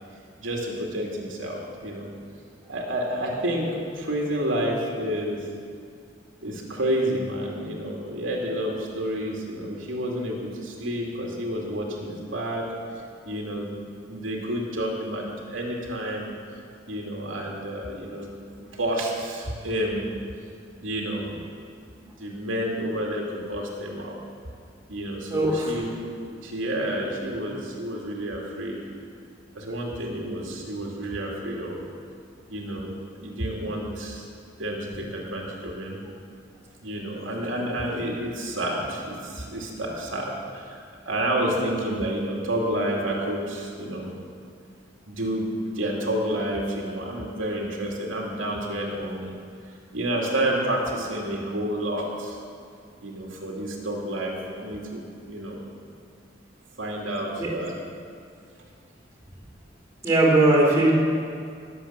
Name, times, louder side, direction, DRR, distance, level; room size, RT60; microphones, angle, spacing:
voice 1, 0.4-2.1 2.7-3.7 3.9-5.4 6.4-12.6 13.2-13.8 14.1-16.3 16.9-20.1 20.8-21.4 22.0-24.2 24.9-25.9 26.2-28.8 29.5-31.8 32.5-32.9 33.2-34.2 34.6-36.0 36.8-44.1 45.1-45.4 45.7-49.4 49.9-52.4 53.0-55.6 56.8-57.7, right 1 dB, 85° right, -2 dB, 2.7 m, -29 dB
voice 2, 25.3-25.7 57.4-57.5 60.0-60.9, right 2 dB, 15° right, -5 dB, 3.9 m, -19 dB
19.5 x 8.0 x 7.5 m, 2.3 s
head